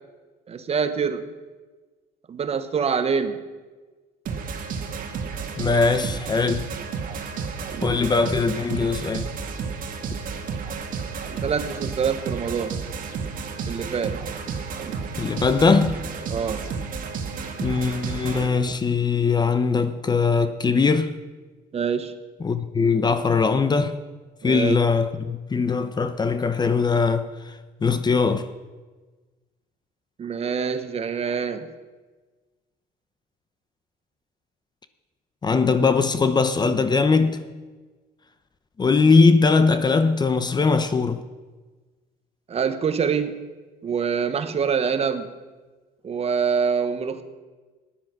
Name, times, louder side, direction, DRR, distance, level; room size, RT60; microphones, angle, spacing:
voice 1, 0.5-1.2 2.3-3.4 11.4-12.8 13.7-14.2 16.3-16.7 21.7-22.2 24.4-24.8 30.2-31.7 42.5-43.4 43.8-45.3 46.0-47.2, right 6 dB, 35° right, 1.0 m, -25 dB
sound 1, 4.3-18.5, right 5 dB, 55° right, 1.7 m, -32 dB
voice 2, 5.6-6.7 7.8-9.3 15.2-16.0 17.6-21.2 22.4-24.0 24.4-28.5 35.4-37.5 38.8-41.2, left 4 dB, 25° left, 0.7 m, -21 dB
14.5 x 10.0 x 6.0 m
cardioid pair, 110°, 17 cm